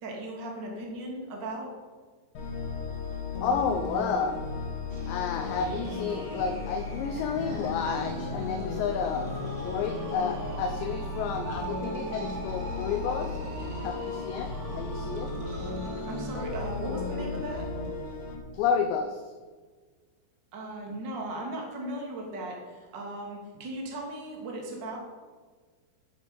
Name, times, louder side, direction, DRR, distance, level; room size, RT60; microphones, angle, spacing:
voice 1, 0.0-1.7 16.1-17.6 20.5-25.0, right 1 dB, 30° right, 0 dB, 2.2 m, -37 dB
sound 1, 2.4-18.4, left 3 dB, 60° left, 3.7 m, -35 dB
voice 2, 3.4-4.4 5.1-9.3 9.6-13.4 13.8-15.3 18.5-19.2, left 6 dB, 75° left, 5 dB, 2.7 m, -31 dB
sound 2, 4.9-16.4, right 2 dB, 75° right, 0.8 m, -43 dB
12.0 x 10.0 x 5.4 m, 1.4 s
omnidirectional pair, 5.9 m